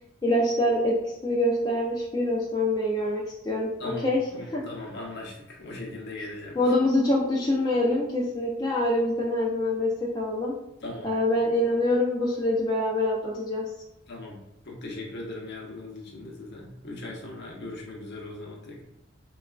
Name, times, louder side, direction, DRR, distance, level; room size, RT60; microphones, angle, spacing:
voice 1, 0.2-4.2 4.5-4.6 6.6-10.5 11.0-13.6, left 1 dB, 20° left, -4 dB, 0.4 m, -25 dB
voice 2, 3.8-6.7 10.8-11.2 14.1-18.8, left 2 dB, 55° left, -1 dB, 0.7 m, -39 dB
3.9 x 2.3 x 2.3 m, 0.87 s
head